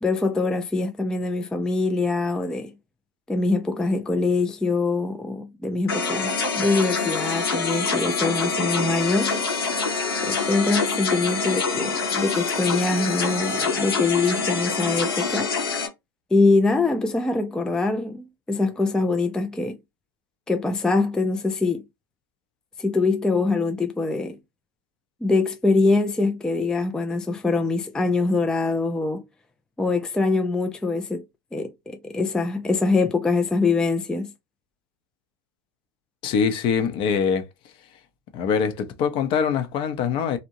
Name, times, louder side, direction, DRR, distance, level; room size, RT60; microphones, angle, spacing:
voice 1, 0.0-2.7 3.3-9.4 10.2-15.5 16.3-19.8 20.5-21.8 22.8-24.4 25.2-29.2 29.8-31.2 31.5-34.3, left 3 dB, 5° left, 0.3 m, -23 dB
sound 1, 5.9-15.9, left 4 dB, 85° left, 1.0 m, -25 dB
voice 2, 36.2-37.5 38.3-40.4, left 6 dB, 45° left, 0.6 m, -23 dB
2.6 x 2.1 x 2.8 m
hypercardioid pair, 95°, 12 cm